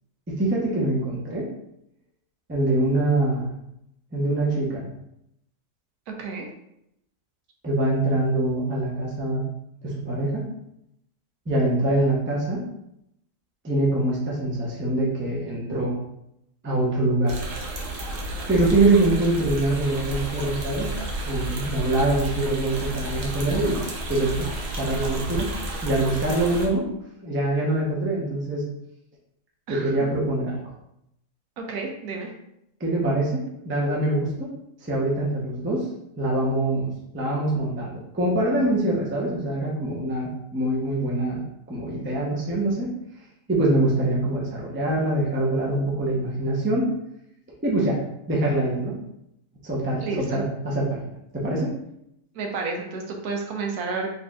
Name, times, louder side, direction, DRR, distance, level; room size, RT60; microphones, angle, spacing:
voice 1, 0.3-1.5 2.5-3.5 4.1-4.9 7.6-9.4 9.8-10.5 11.5-12.6 13.6-15.9 16.6-17.4 18.5-20.9 21.3-24.5 24.8-25.5 25.8-26.8 27.2-28.7 29.7-30.6 32.8-34.5 34.8-35.9 36.2-41.4 41.7-42.9 43.5-46.9 47.6-48.0 48.3-48.9 49.6-51.0 51.3-51.7, right 2 dB, 15° right, -4 dB, 0.4 m, -24 dB
voice 2, 6.1-6.5 29.7-29.9 31.6-32.3 50.0-50.4 52.3-54.1, right 4 dB, 75° right, 2 dB, 1.1 m, -31 dB
sound 1, 17.3-26.7, right 1 dB, 55° right, 0.8 m, -31 dB
4.2 x 3.2 x 2.3 m, 0.80 s
omnidirectional pair, 1.7 m